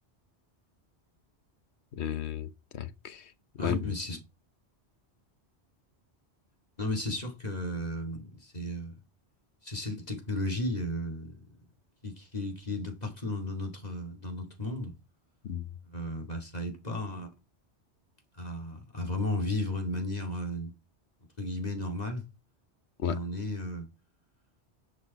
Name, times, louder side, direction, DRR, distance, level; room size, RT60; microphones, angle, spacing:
voice 1, 1.9-3.9 15.4-15.7 23.0-23.2, left 8 dB, 75° left, 1.1 m, -34 dB
voice 2, 3.6-4.2 6.8-8.9 9.6-11.3 12.0-15.0 15.9-17.3 18.4-20.7 21.4-22.2 23.0-23.9, left 1 dB, 35° left, 2.4 m, -34 dB
10.0 x 5.4 x 4.6 m
omnidirectional pair, 1.1 m